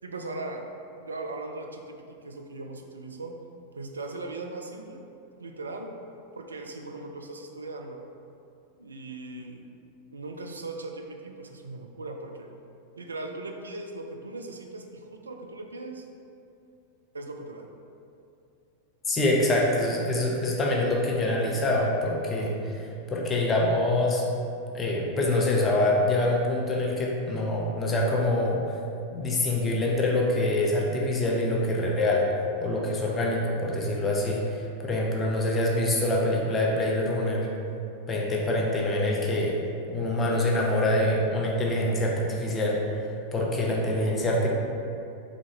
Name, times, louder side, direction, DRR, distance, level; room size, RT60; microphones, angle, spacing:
voice 1, 0.0-0.7 1.0-3.4 3.7-5.1 5.4-5.9 6.3-8.0 8.8-9.7 10.1-12.5 13.0-16.1 17.1-17.7, right 2 dB, 75° right, 3 dB, 0.4 m, -39 dB
voice 2, 19.1-24.2 24.7-28.8 29.1-32.3 32.6-37.5 38.1-39.5 39.9-43.0 43.3-44.5, left 1 dB, 20° left, -2 dB, 0.7 m, -25 dB
4.0 x 3.6 x 3.0 m, 2.6 s
figure-of-eight pair, 90°, 0 cm